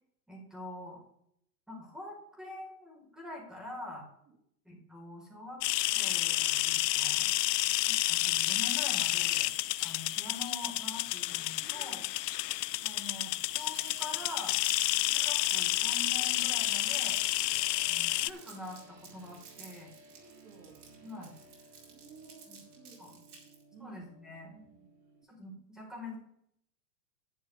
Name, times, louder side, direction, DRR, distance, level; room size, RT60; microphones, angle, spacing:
voice 1, 0.3-1.0 1.7-4.0 4.6-5.6 5.9-7.3 7.9-9.5 9.8-12.0 12.8-14.6 15.1-17.2 17.9-19.9 21.0-21.3 22.5-22.6 23.0-23.1 23.8-24.5 25.3-26.2, left 1 dB, ahead, -2 dB, 3.8 m, -45 dB
sound 1, 5.6-18.3, left 16 dB, 75° left, 0.6 m, -30 dB
voice 2, 11.6-12.0 17.4-17.5 20.1-21.3 21.9-24.0 24.5-25.1, right 4 dB, 30° right, -1 dB, 2.6 m, -57 dB
Crumpling crinkling, 13.4-23.6, right 6 dB, 65° right, 4.4 m, -52 dB
sound 2, 15.8-25.2, right 2 dB, 85° right, 5.0 m, -58 dB
11.5 x 10.5 x 3.3 m, 0.71 s
hypercardioid pair, 140°, 49 cm